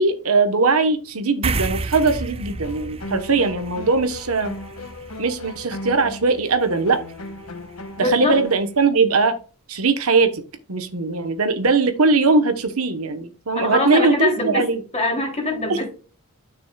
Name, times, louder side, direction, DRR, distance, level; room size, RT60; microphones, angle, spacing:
voice 1, 0.0-4.5 5.2-7.0 8.0-9.4 9.7-10.4 10.7-14.8 15.7-15.8, right 3 dB, 70° right, 8 dB, 1.1 m, -20 dB
sound 1, 1.4-8.2, right 3 dB, 25° right, 0.5 m, -33 dB
sound 2, 2.6-8.6, left 2 dB, 75° left, 1.4 m, -37 dB
voice 2, 8.0-8.3 13.5-14.7 14.9-15.9, left 2 dB, 30° left, 0 dB, 2.9 m, -23 dB
9.6 x 6.1 x 2.3 m, 0.36 s
head